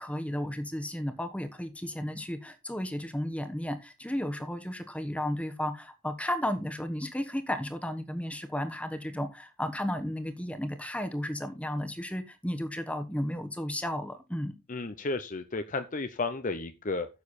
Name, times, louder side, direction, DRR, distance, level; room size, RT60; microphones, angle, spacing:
voice 1, 0.0-14.5, left 1 dB, 5° left, 1.2 m, -33 dB
voice 2, 14.7-17.1, left 3 dB, 35° left, 0.7 m, -33 dB
9.7 x 7.1 x 4.2 m
head